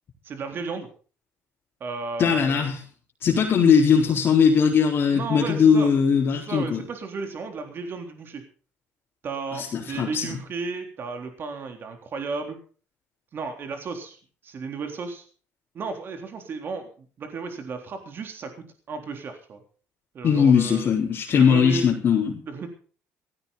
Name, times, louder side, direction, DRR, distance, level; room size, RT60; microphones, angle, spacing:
voice 1, 0.2-0.9 1.8-2.7 5.1-5.9 6.3-8.4 9.2-12.6 13.3-14.2 14.4-15.2 15.7-19.6 20.1-20.9 21.3-21.9 22.5-22.7, right 4 dB, 45° right, 5 dB, 3.6 m, -34 dB
voice 2, 2.2-2.8 3.2-6.8 9.5-10.4 20.2-22.4, left 6 dB, 45° left, -4 dB, 4.2 m, -20 dB
16.5 x 15.5 x 4.1 m, 0.40 s
cardioid pair, 130°, 5 cm